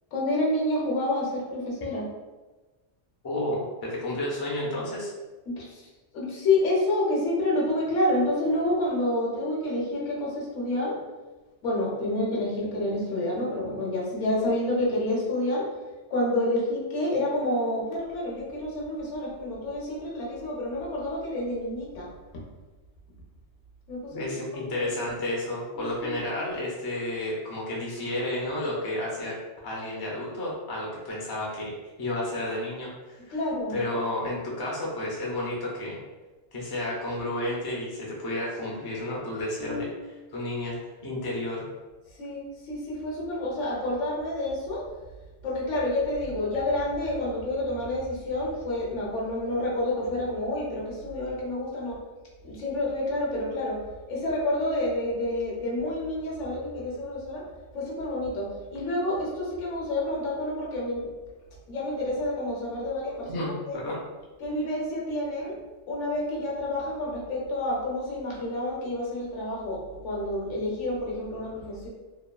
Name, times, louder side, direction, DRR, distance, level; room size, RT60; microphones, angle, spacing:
voice 1, 0.1-2.0 5.5-5.9 6.1-11.0 11.6-15.7 16.1-22.1 22.3-22.4 23.9-24.2 24.8-24.9 25.7-26.2 33.3-33.8 39.6-39.9 42.2-44.8 45.4-52.0 52.4-53.8 54.1-57.5 57.7-61.1 61.7-63.8 64.4-65.6 65.9-71.9, left 1 dB, 85° left, -4 dB, 1.1 m, -29 dB
voice 2, 3.2-5.1 24.1-29.4 29.6-31.7 32.0-33.4 33.7-36.0 36.5-39.9 40.3-40.8 41.0-41.6 63.3-64.0, left 1 dB, 30° left, -4 dB, 0.4 m, -31 dB
2.8 x 2.2 x 2.3 m, 1.2 s
omnidirectional pair, 1.2 m